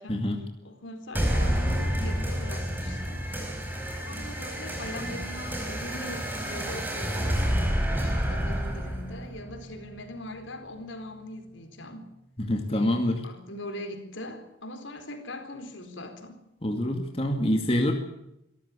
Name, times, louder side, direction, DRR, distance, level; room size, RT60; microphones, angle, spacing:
voice 1, 0.1-0.4 12.4-13.2 16.6-17.9, left 1 dB, 30° left, 3 dB, 2.2 m, -26 dB
voice 2, 0.6-3.2 4.0-7.4 7.9-12.1 12.7-16.4, left 1 dB, 70° left, 7 dB, 4.2 m, -41 dB
sound 1, 1.1-10.2, equal, 10° right, 4.6 m, -29 dB
25.0 x 13.5 x 8.4 m, 0.83 s
head